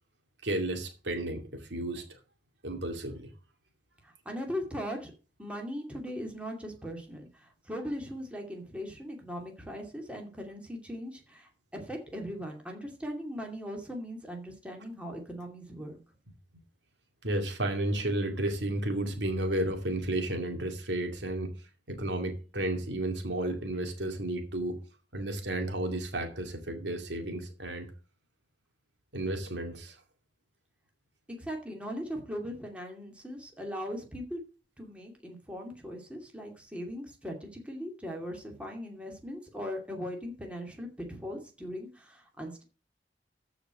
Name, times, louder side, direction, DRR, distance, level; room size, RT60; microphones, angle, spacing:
voice 1, 0.4-2.2 2.6-3.3 17.2-21.6 21.9-24.8 25.1-27.9 29.1-30.0, right 1 dB, 80° right, 2.4 m, -32 dB
voice 2, 4.0-5.1 5.4-16.0 31.4-34.4 34.8-42.6, equal, 5° right, 2.5 m, -39 dB
14.0 x 5.1 x 6.3 m
head